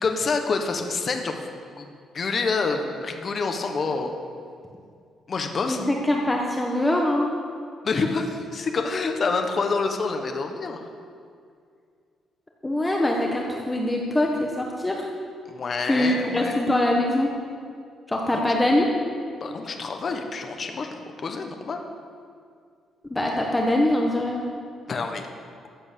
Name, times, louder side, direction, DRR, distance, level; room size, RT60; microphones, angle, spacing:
voice 1, 0.0-4.1 5.3-5.9 7.8-10.9 15.5-16.7 18.3-18.5 19.4-21.8 24.9-25.3, left 4 dB, 40° left, 4 dB, 1.2 m, -27 dB
voice 2, 5.7-7.3 12.6-15.0 15.8-17.3 18.1-18.9 23.1-24.4, left 1 dB, 10° left, 0 dB, 1.2 m, -23 dB
14.5 x 7.9 x 6.9 m, 2.2 s
cardioid pair, 135°, 0 cm